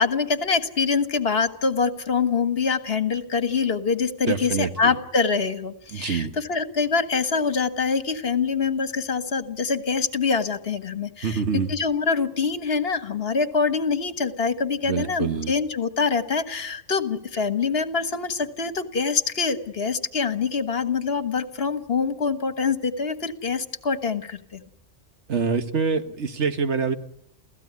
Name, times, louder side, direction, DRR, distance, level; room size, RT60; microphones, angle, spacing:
voice 1, 0.0-11.4 11.7-24.6, left 5 dB, 55° left, 11 dB, 1.7 m, -25 dB
voice 2, 4.3-4.9 5.9-6.3 11.2-11.7 14.9-15.5 25.3-27.0, right 5 dB, 70° right, 9 dB, 1.7 m, -25 dB
29.0 x 16.5 x 9.6 m, 0.74 s
omnidirectional pair, 1.2 m